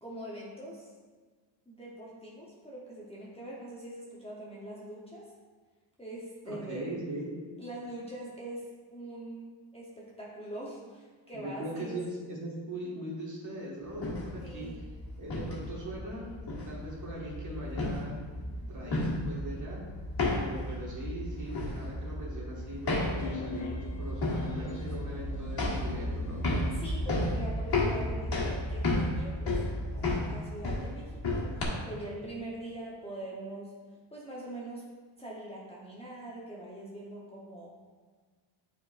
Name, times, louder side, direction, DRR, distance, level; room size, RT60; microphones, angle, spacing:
voice 1, 0.0-0.9 1.7-5.3 6.0-6.9 7.6-12.0 14.4-14.8 26.6-29.6 29.9-31.5 31.8-33.7 34.1-34.9 35.2-37.7, right 1 dB, 15° left, -6 dB, 0.8 m, -43 dB
voice 2, 6.4-7.3 11.3-14.8 15.2-18.1 18.4-19.8 20.3-26.4, right 1 dB, 40° right, -5 dB, 1.7 m, -40 dB
sound 1, 13.9-31.6, left 1 dB, 50° left, 1.6 m, -33 dB
sound 2, 23.2-26.9, left 3 dB, 70° left, 0.8 m, -43 dB
9.3 x 4.4 x 2.5 m, 1.5 s
wide cardioid pair, 145°, 47 cm